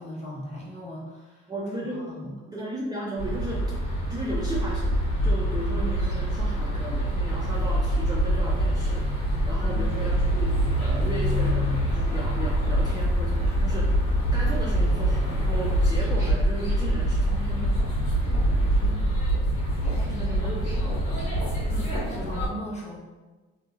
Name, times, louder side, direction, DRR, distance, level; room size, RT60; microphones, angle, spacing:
voice 1, 0.0-1.5 1.8-2.4 9.4-10.0 18.6-19.3 19.8-21.0 21.8-23.0, equal, 20° left, -6 dB, 1.0 m, -40 dB
voice 2, 1.5-3.7 4.1-14.0 14.3-17.8 18.2-19.1 20.1-21.3 21.7-22.0, right 1 dB, 15° right, -5 dB, 0.4 m, -35 dB
sound 1, 3.2-22.5, equal, 85° left, 1.3 m, -25 dB
2.9 x 2.7 x 2.4 m, 1.3 s
cardioid pair, 90°, 30 cm